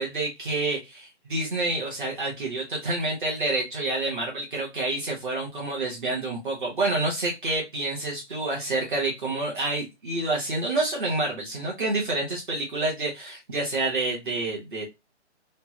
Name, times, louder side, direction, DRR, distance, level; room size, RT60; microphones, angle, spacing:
voice 1, 0.0-14.8, right 2 dB, 45° right, -3 dB, 1.1 m, -28 dB
3.3 x 2.1 x 2.8 m, 0.22 s
hypercardioid pair, 175°, 35 cm